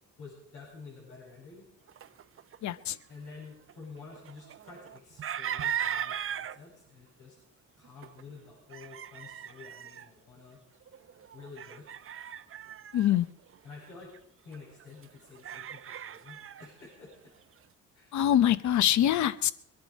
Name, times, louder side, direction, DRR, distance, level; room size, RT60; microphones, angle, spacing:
voice 1, 0.2-1.7 3.1-7.4 7.8-10.6 11.3-11.9 13.6-14.1 14.4-17.3 17.9-18.1, left 4 dB, 85° left, -5 dB, 7.7 m, -49 dB
sound 1, 1.9-3.0 3.7-6.6 7.8-8.2 8.7-10.1 10.8-13.2 13.5-14.2 14.5-16.7, right 9 dB, 45° right, 0.7 m, -38 dB
voice 2, 2.6-3.0 12.9-13.3 18.1-19.5, left 11 dB, 70° left, 15 dB, 0.8 m, -24 dB
22.5 x 10.5 x 5.4 m, 0.72 s
cardioid pair, 90°, 30 cm